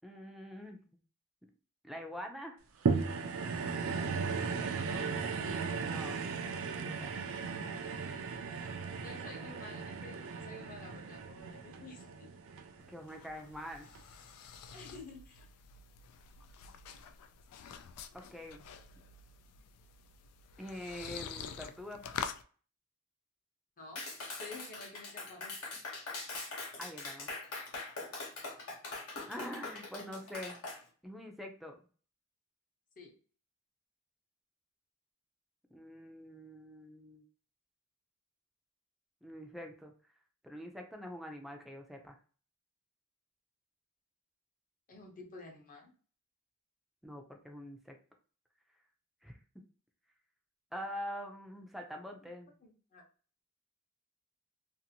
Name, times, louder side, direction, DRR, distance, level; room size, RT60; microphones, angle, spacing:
voice 1, 0.0-0.8 1.8-2.6 5.8-6.2 6.8-7.1 12.9-13.9 18.1-18.7 20.6-22.1 26.8-27.3 29.3-30.6 31.0-31.7 35.7-37.2 39.2-39.9 40.4-42.2 47.0-48.0 49.2-49.4 50.7-52.5, equal, ahead, 2 dB, 0.4 m, -45 dB
sound 1, 2.9-13.3 14.0-14.1, right 5 dB, 65° right, 0.4 m, -36 dB
voice 2, 4.8-5.1 9.0-12.3 14.7-15.5 23.8-24.0 24.4-25.5 33.0-33.1 44.9-45.9 52.6-53.0, left 3 dB, 40° left, 1 dB, 0.8 m, -50 dB
sound 2, 12.9-22.4, left 7 dB, 85° left, 0.3 m, -47 dB
Clapping, 24.0-30.8, left 3 dB, 70° left, 1.0 m, -42 dB
2.6 x 2.5 x 2.8 m, 0.40 s
head